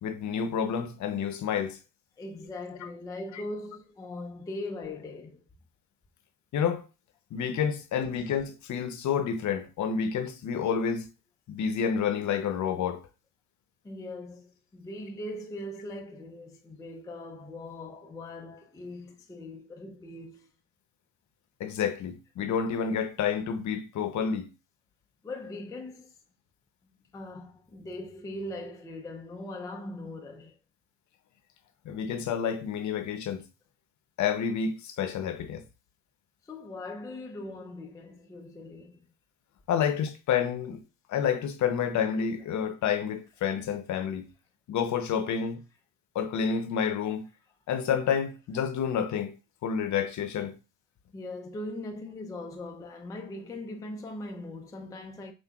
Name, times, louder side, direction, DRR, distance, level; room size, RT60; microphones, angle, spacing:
voice 1, 0.0-1.8 3.3-3.4 6.5-6.9 7.3-11.1 11.5-13.0 21.6-24.5 31.8-33.4 34.2-35.6 39.7-40.8 41.1-44.2 44.7-45.6 46.1-47.2 47.7-49.3 49.6-50.6, left 7 dB, 45° left, 0.8 m, -29 dB
voice 2, 2.2-5.4 13.8-20.5 25.2-26.1 26.8-30.6 36.4-39.1 51.1-55.3, left 2 dB, 10° left, 0.4 m, -40 dB
5.7 x 2.6 x 2.3 m
supercardioid pair, 80°, 39 cm